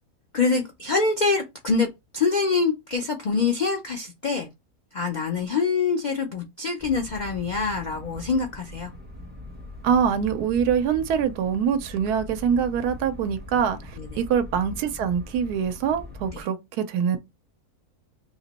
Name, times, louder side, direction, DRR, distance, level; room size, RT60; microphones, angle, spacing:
voice 1, 0.3-1.9 2.1-4.5 4.9-8.9 14.0-14.2 16.3-16.4, left 4 dB, 85° left, 0.4 m, -25 dB
sound 1, 6.8-16.4, left 1 dB, 5° right, 1.0 m, -41 dB
voice 2, 9.8-17.2, right 7 dB, 85° right, 1.1 m, -24 dB
3.2 x 2.9 x 4.0 m
omnidirectional pair, 1.6 m